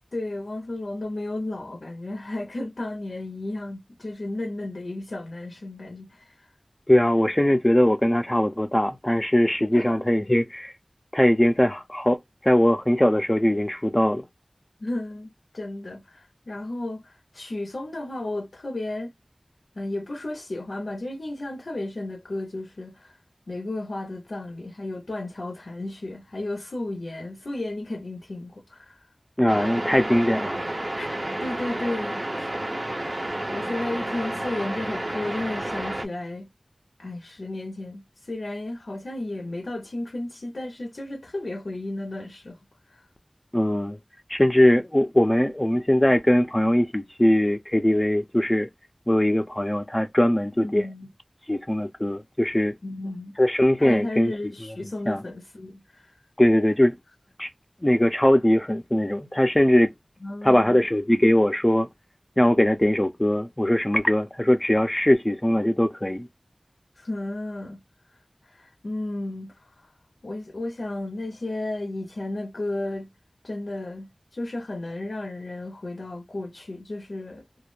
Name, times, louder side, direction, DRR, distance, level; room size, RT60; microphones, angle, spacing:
voice 1, 0.1-6.5 9.7-10.0 14.8-15.3 15.5-19.1 19.8-23.2 23.5-29.1 31.0-32.5 33.5-36.5 37.0-42.6 42.9-43.1 50.6-51.1 52.8-53.4 53.8-56.1 60.2-60.9 67.0-67.8 68.4-69.9 70.2-73.1 73.4-77.5, left 2 dB, 90° left, 0.5 m, -33 dB
voice 2, 6.9-10.7 11.1-14.2 29.4-30.6 43.5-44.0 44.3-48.7 49.1-50.9 51.5-52.7 53.4-54.3 55.1-55.2 56.4-57.0 57.4-57.5 57.8-59.9 60.4-61.9 62.4-66.3, left 1 dB, 20° left, 0.4 m, -21 dB
sound 1, 29.5-36.0, right 1 dB, 40° right, 0.5 m, -30 dB
2.2 x 2.0 x 3.0 m
wide cardioid pair, 45°, 0 cm